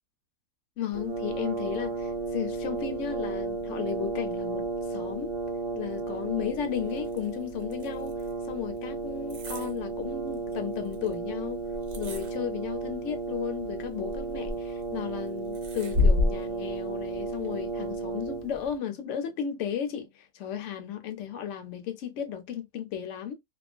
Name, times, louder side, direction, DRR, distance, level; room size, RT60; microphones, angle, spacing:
voice 1, 0.8-5.3 5.7-8.2 8.5-11.7 12.0-23.3, left 9 dB, 70° left, 0.8 m, -34 dB
Brass instrument, 0.9-18.7, right 4 dB, 70° right, 0.5 m, -34 dB
sound 1, 6.6-18.0, left 3 dB, 55° right, 0.9 m, -33 dB
2.4 x 2.1 x 2.4 m
omnidirectional pair, 1.5 m